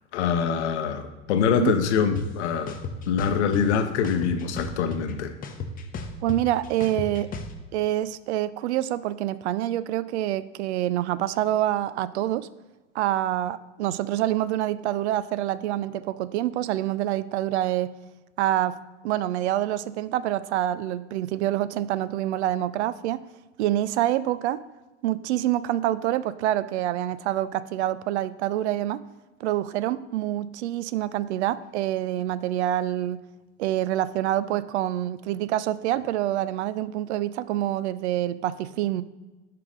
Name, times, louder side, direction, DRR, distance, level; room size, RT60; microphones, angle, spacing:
voice 1, 0.1-2.7 3.1-5.3, left 7 dB, 65° left, 8 dB, 0.9 m, -24 dB
sound 1, 2.2-2.3 2.7-3.6 4.0-5.1 5.4-7.5, left 5 dB, 25° left, 0.8 m, -33 dB
voice 2, 6.2-7.3 7.7-12.5 12.9-17.9 18.4-18.8 19.0-23.2 23.6-24.6 25.0-29.0 29.4-33.2 33.6-39.0, right 13 dB, 65° right, 17 dB, 0.5 m, -26 dB
5.8 x 4.8 x 5.0 m, 1.1 s
hypercardioid pair, 100°, 36 cm